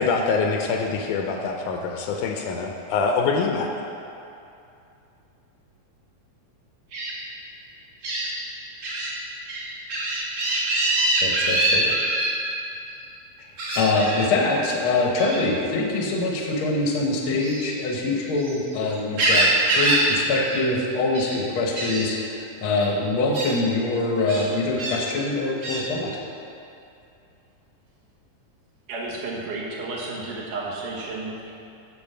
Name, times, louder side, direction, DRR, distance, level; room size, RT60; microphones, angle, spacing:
voice 1, 0.0-3.7, left 4 dB, 80° left, 2 dB, 2.0 m, -24 dB
Gull seagull, 6.9-7.1 8.0-8.3 8.8-9.1 9.5-12.3 13.6-14.3 15.2-15.5 17.3-18.6 18.9-20.1 20.3-20.6 20.9-21.4 21.8-22.0 22.8-22.9 23.3-23.5 24.3-25.0 25.6-25.8, right 2 dB, 55° right, 2.9 m, -24 dB
voice 2, 11.2-11.9 13.4-13.5 13.7-26.1, left 2 dB, 60° left, -1 dB, 1.4 m, -24 dB
voice 3, 28.9-31.5, right 3 dB, 75° right, -4 dB, 2.9 m, -32 dB
8.6 x 6.6 x 5.6 m, 2.6 s
omnidirectional pair, 3.8 m